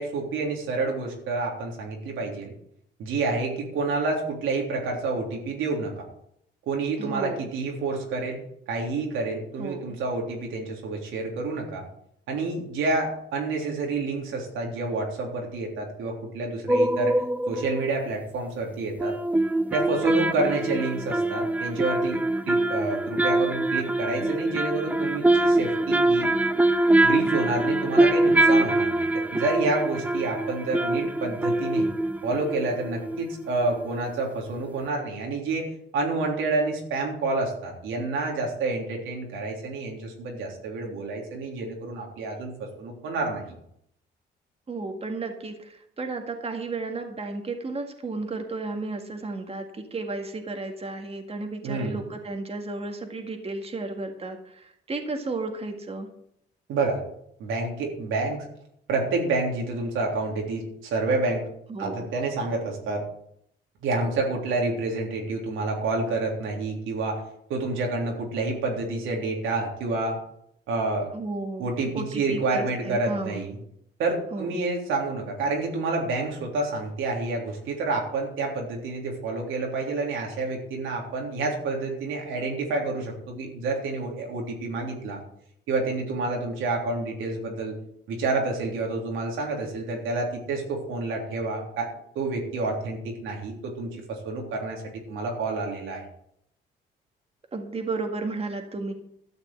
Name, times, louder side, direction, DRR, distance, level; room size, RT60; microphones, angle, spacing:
voice 1, 0.0-2.5 3.0-6.1 6.7-8.4 8.7-11.8 12.3-19.2 19.7-22.2 22.5-26.3 27.0-31.9 32.2-43.4 51.6-52.0 56.7-57.0 57.4-58.5 58.9-61.4 61.8-63.0 63.8-67.2 67.5-70.2 70.7-71.1 71.6-73.6 74.0-85.2 85.7-87.8 88.1-91.9 92.2-96.0, right 3 dB, 85° right, 0 dB, 3.5 m, -29 dB
voice 2, 7.0-7.5 9.6-10.0 44.7-56.1 61.7-62.1 71.1-71.7 71.9-73.4 74.3-74.5 97.5-98.9, right 3 dB, 30° right, 4 dB, 1.9 m, -33 dB
sound 1, 16.7-17.9 19.0-33.5 33.8-33.9, right 1 dB, 10° right, 0.6 m, -24 dB
13.0 x 6.6 x 7.9 m, 0.73 s
cardioid pair, 90°, 20 cm